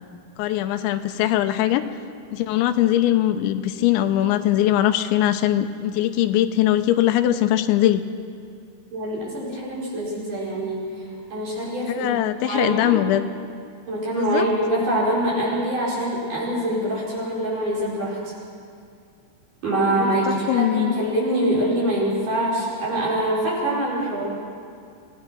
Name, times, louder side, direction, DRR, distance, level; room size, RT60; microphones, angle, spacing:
voice 1, 0.4-1.8 2.3-8.0 11.9-13.2 14.2-14.5 20.0-20.1 20.5-20.9, left 13 dB, 90° left, 9 dB, 3.1 m, -21 dB
voice 2, 8.9-11.0 11.3-13.0 13.9-18.2 19.6-24.3, right 1 dB, 45° right, -6 dB, 6.8 m, -24 dB
26.5 x 17.5 x 6.2 m, 2.4 s
omnidirectional pair, 5.2 m